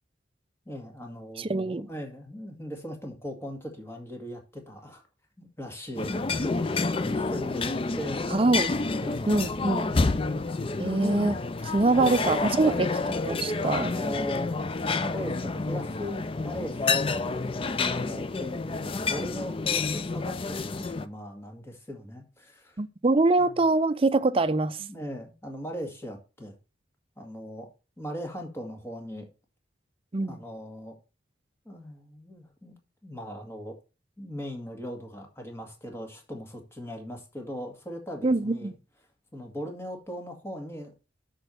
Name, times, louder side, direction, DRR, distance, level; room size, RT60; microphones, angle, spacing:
voice 1, 0.7-5.0 5.4-8.3 9.0-9.4 10.1-10.4 11.7-12.9 13.7-14.6 15.0-17.2 17.8-22.8 23.5-23.6 24.8-26.6 27.2-27.7 28.0-29.3 30.2-30.9 31.7-32.7 33.0-33.8 34.2-38.7 39.3-40.9, equal, 15° left, 1.8 m, -39 dB
voice 2, 1.4-1.9 8.3-8.7 9.3-9.9 10.8-11.4 11.6-12.9 13.2-13.9 22.8-24.8 30.1-30.4 38.2-38.7, right 2 dB, 30° right, 0.5 m, -24 dB
sound 1, 6.0-21.1, left 3 dB, 30° left, 0.4 m, -29 dB
6.3 x 4.5 x 6.6 m
head